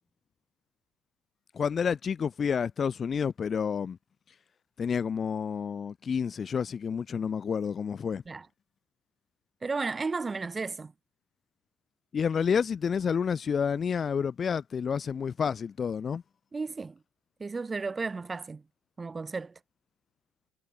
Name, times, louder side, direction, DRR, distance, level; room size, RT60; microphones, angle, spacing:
voice 1, 1.6-4.0 4.8-8.2 12.1-16.2, left 6 dB, 35° left, 3.5 m, -29 dB
voice 2, 9.6-10.9 16.5-17.0 17.4-18.6 19.0-19.5, right 4 dB, 20° right, 7.4 m, -33 dB
supercardioid pair, 95°, 0 cm